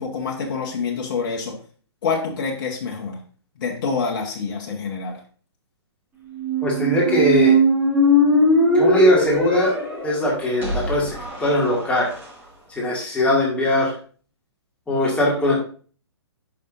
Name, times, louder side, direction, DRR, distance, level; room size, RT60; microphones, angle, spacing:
voice 1, 0.0-1.6 2.0-3.2 3.6-5.2, left 5 dB, 45° left, 0 dB, 1.4 m, -26 dB
Squeak, 6.3-12.3, equal, 15° right, 3.0 m, -20 dB
voice 2, 6.6-7.6 8.7-9.8 10.0-12.1 12.7-13.9 14.9-15.6, left 1 dB, 10° left, -4 dB, 2.4 m, -20 dB
9.0 x 5.9 x 2.7 m, 0.42 s
figure-of-eight pair, 120°, 14 cm